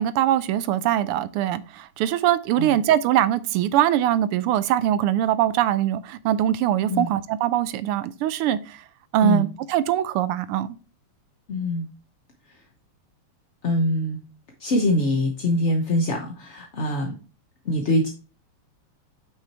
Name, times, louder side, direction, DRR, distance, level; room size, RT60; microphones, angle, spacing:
voice 1, 0.0-8.8 9.1-10.7, right 11 dB, 90° right, 1.6 m, -22 dB
voice 2, 11.5-11.9 13.6-14.2 14.6-17.2 17.6-18.1, left 1 dB, 45° left, 0.9 m, -23 dB
6.1 x 5.7 x 4.3 m
omnidirectional pair, 2.4 m